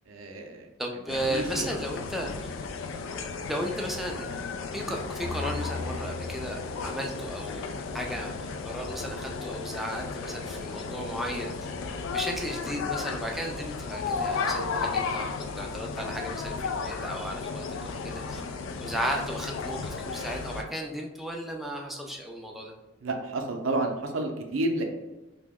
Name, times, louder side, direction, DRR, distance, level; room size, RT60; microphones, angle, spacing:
voice 1, 0.1-0.7 1.3-1.7 23.0-24.8, right 2 dB, 90° right, 3 dB, 0.5 m, -30 dB
voice 2, 0.8-2.3 3.5-4.3 4.7-11.5 12.1-18.4 18.8-22.7, equal, ahead, 0 dB, 0.3 m, -35 dB
sound 1, 1.1-20.6, left 4 dB, 80° left, 0.3 m, -34 dB
sound 2, 5.2-7.4, left 2 dB, 45° left, 0.8 m, -38 dB
2.9 x 2.1 x 3.5 m, 1.1 s
head